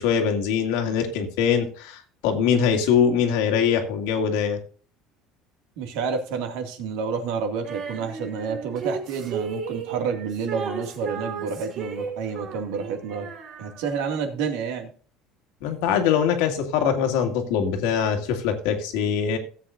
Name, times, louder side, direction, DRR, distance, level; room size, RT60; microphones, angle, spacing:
voice 1, 0.0-4.6 15.6-19.4, left 7 dB, 90° left, 4 dB, 2.1 m, -23 dB
voice 2, 5.8-13.3 13.6-14.9, right 6 dB, 85° right, 4 dB, 2.3 m, -29 dB
Female singing, 7.6-14.1, right 5 dB, 45° right, 3.3 m, -35 dB
17.0 x 7.9 x 2.6 m, 0.43 s
cardioid pair, 155°, 0 cm